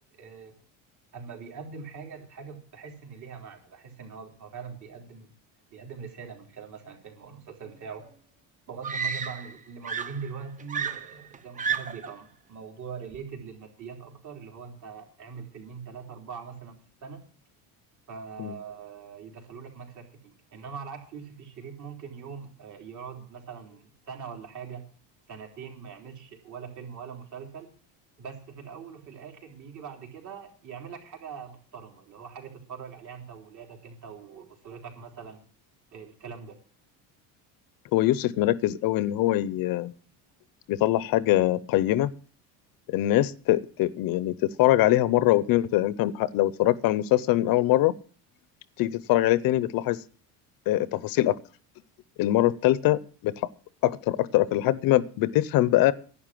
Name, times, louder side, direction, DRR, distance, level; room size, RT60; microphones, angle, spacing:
voice 1, 0.2-0.5 1.1-5.3 5.7-8.1 8.7-17.2 18.1-24.9 25.3-27.7 28.2-35.4 35.9-36.6, right 6 dB, 45° right, 2 dB, 3.7 m, -42 dB
Screaming, 8.0-8.1 8.8-9.6 9.9-12.2 13.1-13.4, right 6 dB, 20° right, 0.7 m, -32 dB
voice 2, 37.9-39.9 40.7-42.1 42.9-47.9 48.8-50.0 50.7-51.4 52.2-53.3 53.8-55.9, left 15 dB, 55° left, 18 dB, 0.7 m, -23 dB
11.5 x 9.9 x 7.5 m, 0.43 s
cardioid pair, 160°, 41 cm